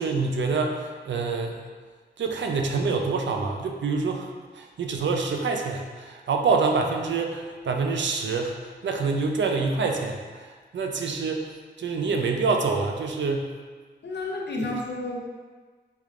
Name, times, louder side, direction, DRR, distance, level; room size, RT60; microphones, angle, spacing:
voice 1, 0.0-1.6 2.2-11.5 11.8-13.5 14.6-14.7, right 4 dB, 85° right, 3 dB, 0.5 m, -26 dB
voice 2, 14.0-15.2, left 2 dB, 70° left, -1 dB, 0.7 m, -31 dB
4.2 x 3.5 x 2.4 m, 1.5 s
wide cardioid pair, 70°, 18 cm